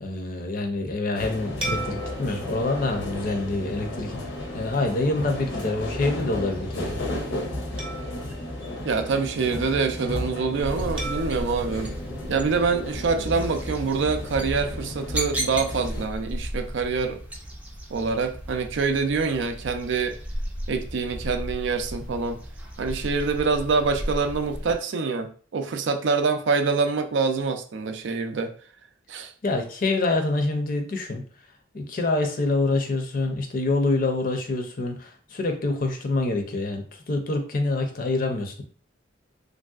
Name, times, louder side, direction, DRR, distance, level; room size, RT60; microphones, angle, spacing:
voice 1, 0.0-4.1 4.5-7.0 29.4-31.2 31.7-38.6, left 2 dB, 50° left, 4 dB, 0.5 m, -26 dB
sound 1, 1.1-16.1, left 1 dB, 85° left, 0.8 m, -33 dB
sound 2, 1.6-4.3 4.9-5.1 7.8-9.6 11.0-13.3, right 2 dB, 30° right, 0.7 m, -39 dB
voice 2, 8.8-11.9 12.3-17.2 17.9-20.2 20.7-22.4 22.8-28.5 29.1-29.3, right 4 dB, 75° right, 7 dB, 0.4 m, -25 dB
sound 3, 10.6-24.7, equal, 10° right, 0.4 m, -35 dB
3.1 x 2.6 x 2.3 m, 0.43 s
head